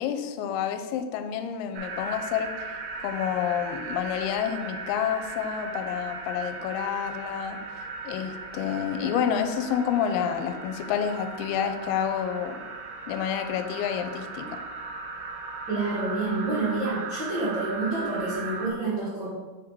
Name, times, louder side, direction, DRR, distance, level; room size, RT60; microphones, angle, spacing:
voice 1, 0.0-2.5 3.0-7.6 8.1-12.6 13.1-14.5, left 8 dB, 80° left, 7 dB, 2.5 m, -29 dB
sound 1, 1.8-18.7, right 3 dB, 90° right, 2.9 m, -37 dB
voice 2, 15.7-19.3, right 3 dB, 70° right, -9 dB, 1.0 m, -28 dB
7.2 x 3.7 x 4.7 m, 1.3 s
omnidirectional pair, 4.6 m